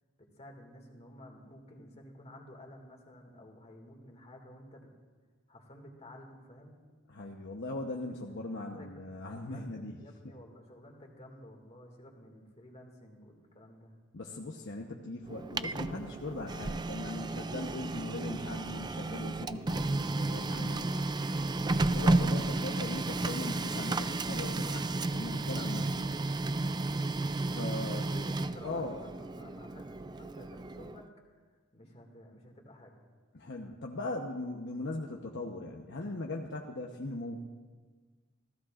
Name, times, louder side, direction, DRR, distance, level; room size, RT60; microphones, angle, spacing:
voice 1, 0.2-4.9 5.5-6.8 8.6-8.9 9.3-9.7 10.0-13.9 22.2-22.5 27.7-31.4 31.7-32.9, left 1 dB, 30° left, 1 dB, 2.2 m, -52 dB
voice 2, 7.1-10.3 14.1-21.1 21.9-26.2 27.4-28.1 28.6-29.0 33.3-37.5, left 2 dB, 60° left, 0 dB, 1.0 m, -39 dB
Printer, 15.3-31.1, right 2 dB, 20° right, 0.4 m, -33 dB
28.0 x 16.0 x 2.5 m, 1.4 s
head